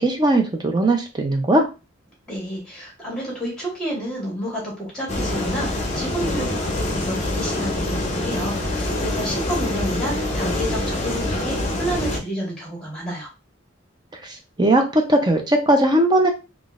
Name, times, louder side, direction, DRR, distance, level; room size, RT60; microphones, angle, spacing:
voice 1, 0.0-1.7 14.2-16.3, right 1 dB, 20° right, 3 dB, 0.6 m, -19 dB
voice 2, 2.3-13.3, equal, 5° left, -4 dB, 1.5 m, -30 dB
sound 1, 5.1-12.2, left 1 dB, 35° left, 0.6 m, -25 dB
3.7 x 2.4 x 2.4 m, 0.29 s
head